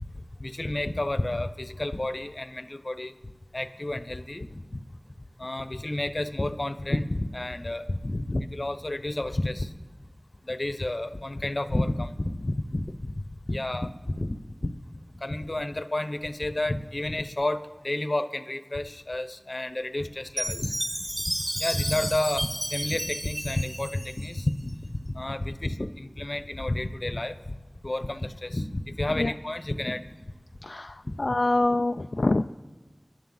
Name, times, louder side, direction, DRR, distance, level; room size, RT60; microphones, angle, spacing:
voice 1, 0.1-3.1 3.5-4.8 5.4-9.7 10.4-14.7 15.2-20.8 21.3-27.5 27.8-30.0 31.0-31.3, left 1 dB, 50° left, 11 dB, 0.9 m, -31 dB
Chime, 20.4-24.7, equal, 15° right, 1.3 m, -32 dB
voice 2, 30.6-32.6, left 2 dB, 70° left, 7 dB, 0.4 m, -25 dB
29.5 x 10.5 x 4.0 m, 1.3 s
wide cardioid pair, 40°, 0 cm